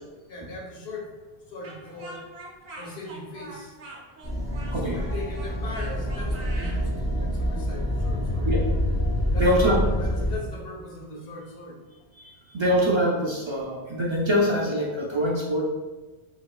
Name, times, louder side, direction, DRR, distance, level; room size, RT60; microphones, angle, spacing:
voice 1, 0.3-1.1 1.5-2.3 2.8-3.7 4.7-8.5 9.3-11.8, left 2 dB, 65° left, -3 dB, 1.0 m, -39 dB
Speech, 1.6-6.8, right 2 dB, 65° right, 0.8 m, -43 dB
sound 1, 4.2-10.4, equal, 25° left, 0.4 m, -26 dB
voice 2, 9.4-9.8 12.2-15.7, equal, 45° right, -4 dB, 0.4 m, -24 dB
3.9 x 2.8 x 2.2 m, 1.2 s
omnidirectional pair, 1.1 m